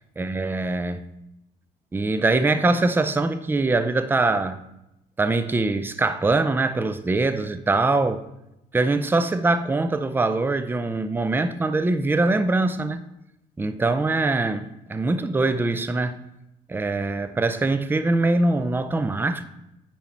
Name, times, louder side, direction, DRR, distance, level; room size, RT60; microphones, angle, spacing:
voice 1, 0.2-1.0 1.9-4.6 5.2-8.2 8.7-13.0 13.6-16.2 16.7-19.5, right 2 dB, 10° right, 11 dB, 0.5 m, -23 dB
9.8 x 4.7 x 4.2 m, 0.86 s
cardioid pair, 110°, 17 cm